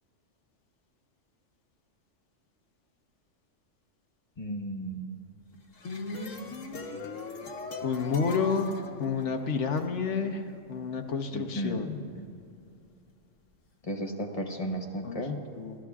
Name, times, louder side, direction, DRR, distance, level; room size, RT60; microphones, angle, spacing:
voice 1, 4.4-5.1 11.3-12.3 13.9-15.4, equal, 30° left, 2 dB, 1.1 m, -34 dB
sound 1, 5.5-9.8, left 3 dB, 90° left, 1.4 m, -39 dB
voice 2, 7.8-8.7 9.0-10.4 10.7-11.9 15.0-15.2 15.5-15.8, left 5 dB, 70° left, 5 dB, 1.2 m, -29 dB
25.5 x 15.0 x 2.4 m, 2.5 s
omnidirectional pair, 1.3 m